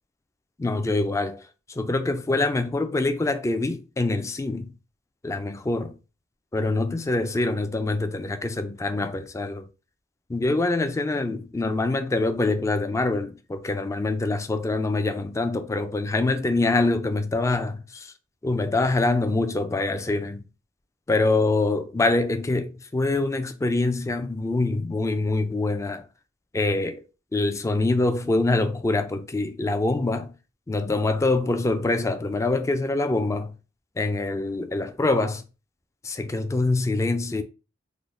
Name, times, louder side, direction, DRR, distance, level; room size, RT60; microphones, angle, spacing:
voice 1, 0.6-1.4 1.7-4.7 5.2-5.9 6.5-9.7 10.3-18.1 18.4-20.4 21.1-26.0 26.5-27.0 27.3-30.3 30.7-33.5 34.0-35.4 36.0-37.4, left 2 dB, 15° left, 0.3 m, -25 dB
3.8 x 2.0 x 3.2 m
head